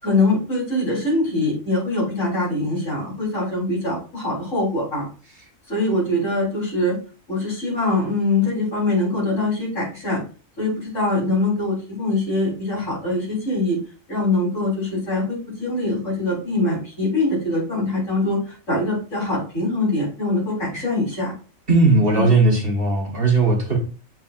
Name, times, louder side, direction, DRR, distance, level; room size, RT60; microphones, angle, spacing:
voice 1, 0.0-5.0 5.7-7.0 7.3-10.2 10.6-13.8 14.1-18.4 18.7-21.3 22.1-22.3, left 2 dB, 70° left, 4.4 m, -23 dB
voice 2, 21.7-23.8, right 3 dB, 45° right, 1.5 m, -17 dB
7.5 x 5.4 x 2.5 m
omnidirectional pair, 1.3 m